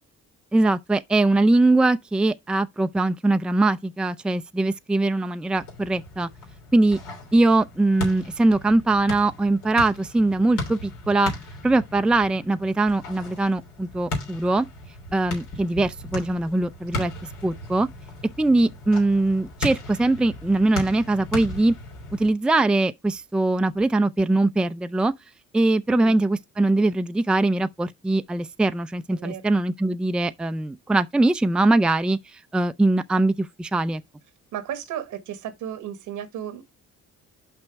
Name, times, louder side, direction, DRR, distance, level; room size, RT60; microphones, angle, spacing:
voice 1, 0.5-6.3 6.7-7.0 7.3-11.3 11.6-14.7 15.1-17.1 17.4-17.9 18.4-21.7 22.1-25.1 25.5-32.2 32.5-34.0, right 2 dB, 5° right, 0.4 m, -21 dB
sound 1, 5.5-22.3, left 2 dB, 90° left, 3.4 m, -37 dB
voice 2, 25.9-26.2 29.1-29.4 34.5-36.6, right 10 dB, 85° right, 1.3 m, -34 dB
5.8 x 5.2 x 4.6 m
cardioid pair, 90°, 30 cm